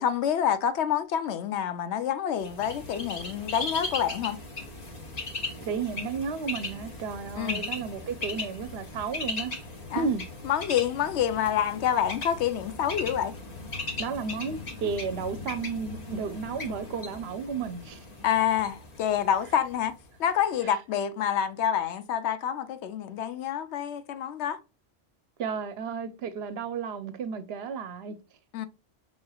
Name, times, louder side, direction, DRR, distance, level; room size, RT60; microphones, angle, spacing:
voice 1, 0.0-4.4 7.4-7.6 9.9-10.1 10.4-13.3 18.2-19.9 20.2-24.6 28.5-28.7, left 9 dB, 75° left, 0.9 m, -27 dB
Bird, 2.4-20.2, left 3 dB, 35° left, 0.9 m, -38 dB
voice 2, 5.6-9.6 9.9-10.2 14.0-18.1 20.6-20.7 25.4-28.2, right 5 dB, 65° right, 0.8 m, -33 dB
5.4 x 3.2 x 2.2 m
omnidirectional pair, 1.2 m